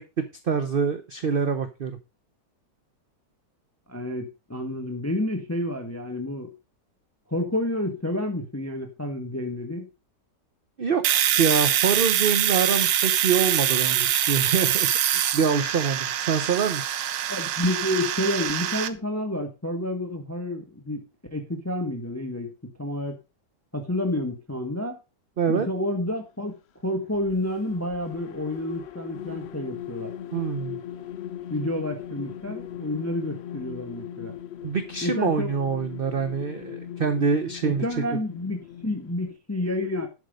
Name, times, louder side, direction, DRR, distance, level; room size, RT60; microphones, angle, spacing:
voice 1, 0.0-2.0 10.8-11.0 11.3-16.9 25.4-25.7 30.3-30.8 34.6-37.8, right 6 dB, 50° right, 0.7 m, -25 dB
voice 2, 3.9-6.5 7.3-9.9 17.3-21.0 21.3-23.2 23.7-25.0 25.5-26.5 26.8-30.1 31.5-34.3 35.0-35.5 37.6-40.1, left 1 dB, 10° left, 1.0 m, -29 dB
Domestic sounds home sounds, 11.0-18.9, right 11 dB, 90° right, 1.5 m, -24 dB
sound 1, 27.1-39.3, left 11 dB, 80° left, 0.5 m, -39 dB
11.0 x 5.4 x 5.1 m
omnidirectional pair, 1.9 m